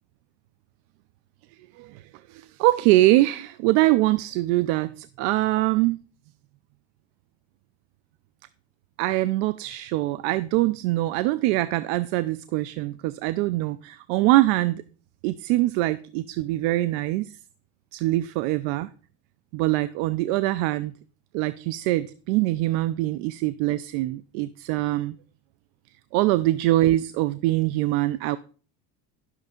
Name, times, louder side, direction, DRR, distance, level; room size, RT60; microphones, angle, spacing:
voice 1, 2.3-6.0 9.0-14.8 15.2-17.3 17.9-18.9 19.5-20.9 21.3-25.1 26.1-28.4, right 17 dB, 75° right, 0.6 m, -23 dB
11.0 x 6.6 x 5.1 m
supercardioid pair, 100°, 35 cm